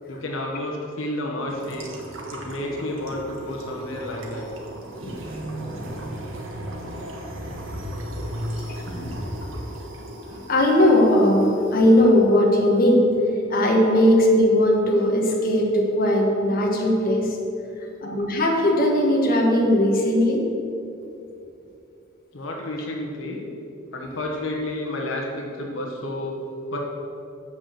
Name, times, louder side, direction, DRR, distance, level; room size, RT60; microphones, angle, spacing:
voice 1, 0.1-1.9 2.3-4.5 22.3-23.4 23.9-26.4 26.7-26.8, left 1 dB, 75° left, -1 dB, 1.2 m, -30 dB
sound 1, 1.5-11.9, right 1 dB, 80° right, 1.4 m, -36 dB
voice 2, 8.9-9.5 10.5-13.1 13.5-17.4 18.0-20.5, left 1 dB, 45° left, -1 dB, 1.3 m, -19 dB
7.7 x 6.1 x 7.6 m, 2.7 s
head